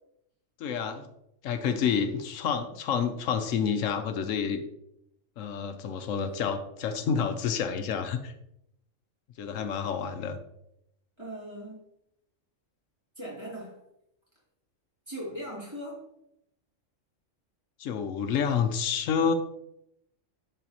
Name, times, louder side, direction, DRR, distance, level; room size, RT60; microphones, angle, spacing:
voice 1, 0.6-1.1 1.4-4.6 5.4-8.3 9.4-10.4 17.8-19.3, left 7 dB, 80° left, 8 dB, 1.0 m, -29 dB
voice 2, 11.2-11.8 13.2-13.8 15.1-16.0, equal, 20° right, -7 dB, 2.7 m, -39 dB
11.0 x 4.0 x 2.9 m, 0.80 s
omnidirectional pair, 1.3 m